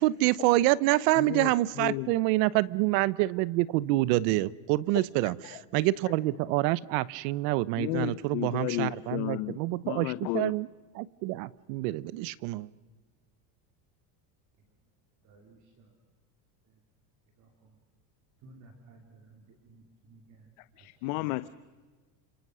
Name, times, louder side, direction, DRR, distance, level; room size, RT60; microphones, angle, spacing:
voice 1, 0.0-10.7 10.9-12.7, right 17 dB, 70° right, 21 dB, 1.0 m, -27 dB
voice 2, 1.2-1.5 1.8-2.1 7.8-9.6 9.8-10.5 20.8-21.5, left 20 dB, 65° left, 14 dB, 0.9 m, -32 dB
voice 3, 15.2-15.9 17.4-17.8 18.4-20.5 20.8-20.9 21.1-21.3, right 3 dB, 35° right, 4 dB, 3.1 m, -56 dB
30.0 x 27.0 x 6.3 m, 1.3 s
cardioid pair, 175°, 49 cm